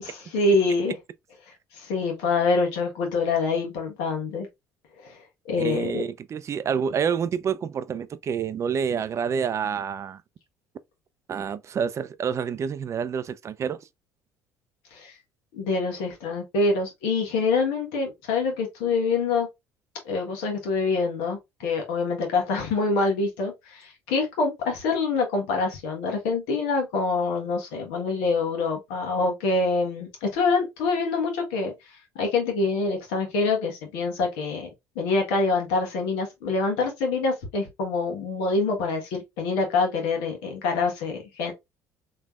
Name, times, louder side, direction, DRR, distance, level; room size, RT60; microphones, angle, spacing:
voice 1, 0.3-1.0 1.7-4.5 5.0-5.2 5.5-6.0 14.9-15.1 15.5-19.5 20.0-31.7 32.1-34.7 34.9-41.5, left 3 dB, 80° left, 1.3 m, -25 dB
voice 2, 5.6-10.2 11.3-13.8, right 7 dB, 40° right, 0.4 m, -28 dB
3.3 x 3.0 x 2.4 m
supercardioid pair, 75°, 8 cm